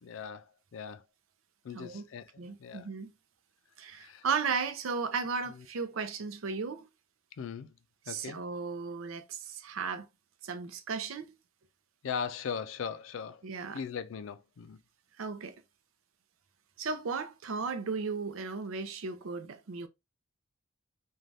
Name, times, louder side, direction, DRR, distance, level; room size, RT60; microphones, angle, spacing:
voice 1, 0.0-1.0 1.6-2.9 4.0-4.2 5.5-5.6 7.4-7.7 8.1-8.4 12.0-13.4 13.7-14.8, left 6 dB, 70° left, 0.4 m, -39 dB
voice 2, 2.4-3.1 3.8-6.9 8.1-10.1 10.4-11.4 13.4-13.8 15.2-15.5 16.8-19.9, right 5 dB, 85° right, 0.5 m, -35 dB
3.2 x 2.3 x 2.6 m
head